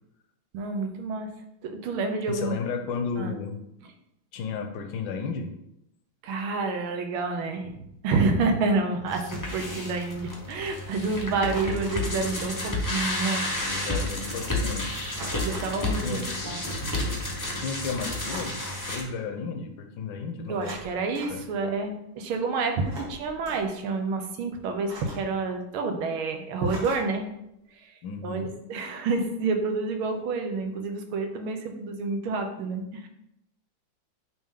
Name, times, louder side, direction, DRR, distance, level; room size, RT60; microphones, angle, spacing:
voice 1, 0.5-1.3 1.6-2.6 3.2-3.3 6.2-13.5 13.9-14.0 15.3-17.0 20.5-21.9 22.2-27.3 27.8-27.9 28.2-33.1, right 3 dB, 90° right, 5 dB, 1.7 m, -29 dB
voice 2, 2.3-3.6 4.3-5.5 11.5-11.8 13.6-14.9 16.0-16.3 17.5-20.8 21.3-21.4 28.0-28.5, left 5 dB, 75° left, 6 dB, 1.3 m, -33 dB
sound 1, 9.1-19.0, left 2 dB, 20° left, 0.5 m, -31 dB
sound 2, 11.5-12.2 13.5-13.6 13.9-14.2 15.1-15.8 18.2-18.9 20.5-21.4 22.8-23.7 24.8-25.4 26.6-27.2, right 1 dB, 70° right, 2.5 m, -41 dB
8.7 x 3.0 x 3.6 m, 0.81 s
omnidirectional pair, 2.2 m